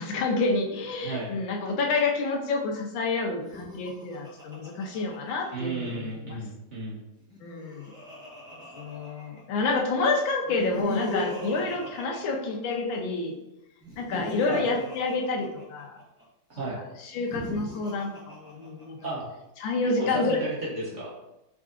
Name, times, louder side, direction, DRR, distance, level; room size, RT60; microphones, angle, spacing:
voice 1, 0.0-6.4 7.4-7.9 8.7-13.4 14.0-16.0 16.7-19.1 19.6-20.4, left 3 dB, 90° left, 2 dB, 1.5 m, -29 dB
voice 2, 1.0-1.3 5.5-7.0 14.5-14.7 16.5-16.8 19.0-19.2 20.0-21.1, right 2 dB, 50° right, -5 dB, 1.0 m, -33 dB
Laughter, 3.3-5.9 7.2-9.6 10.4-13.0 13.8-16.2 17.1-19.0, equal, 5° right, 0.5 m, -38 dB
4.7 x 3.7 x 2.4 m, 0.91 s
omnidirectional pair, 2.0 m